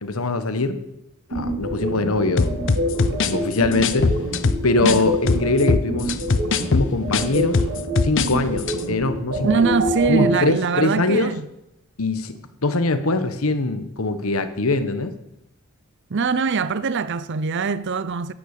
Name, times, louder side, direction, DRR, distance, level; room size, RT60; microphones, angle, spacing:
voice 1, 0.0-0.8 1.3-2.6 3.1-4.1 4.6-6.1 6.7-7.6 8.0-9.7 10.1-11.3 12.0-15.1, left 2 dB, 85° left, 1.3 m, -22 dB
sound 1, 1.3-10.3, right 1 dB, 80° right, 5.9 m, -26 dB
sound 2, 2.4-5.0 5.3-8.3 8.6-8.8, left 4 dB, 60° left, 0.8 m, -21 dB
voice 2, 9.4-11.5 16.1-18.3, right 5 dB, 60° right, 0.6 m, -22 dB
11.5 x 10.0 x 8.4 m
head